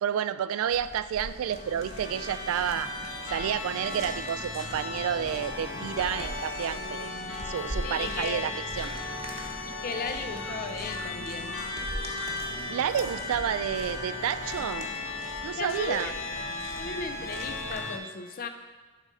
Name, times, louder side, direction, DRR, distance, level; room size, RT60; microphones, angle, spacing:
voice 1, 0.0-2.9 3.3-7.1 7.5-8.5 8.8-8.9 12.7-14.9 15.4-16.1, right 9 dB, 85° right, 15 dB, 0.3 m, -30 dB
sound 1, 0.7-17.8, right 1 dB, 30° right, 0.9 m, -43 dB
sound 2, 1.2-18.0, left 3 dB, 60° left, 0.9 m, -36 dB
voice 2, 7.8-8.4 9.7-11.7 15.6-16.2 16.8-18.5, left 4 dB, 45° left, 8 dB, 0.5 m, -36 dB
7.3 x 3.7 x 5.4 m, 1.2 s
head